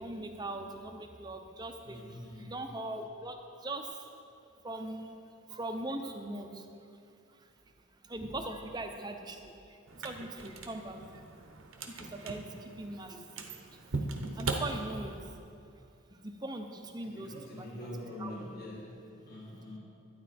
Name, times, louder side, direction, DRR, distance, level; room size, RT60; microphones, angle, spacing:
voice 1, 0.0-4.1 4.6-6.7 6.9-7.0 7.3-7.5 8.0-11.2 11.8-13.8 14.3-15.2 16.1-17.9 18.2-18.3, right 2 dB, 20° right, 5 dB, 0.6 m, -41 dB
voice 2, 1.8-2.5 9.5-9.6 17.0-19.8, left 1 dB, 45° left, -7 dB, 1.4 m, -44 dB
sound 1, 9.9-15.4, right 3 dB, 70° right, 0.9 m, -39 dB
12.0 x 9.6 x 4.2 m, 2.6 s
head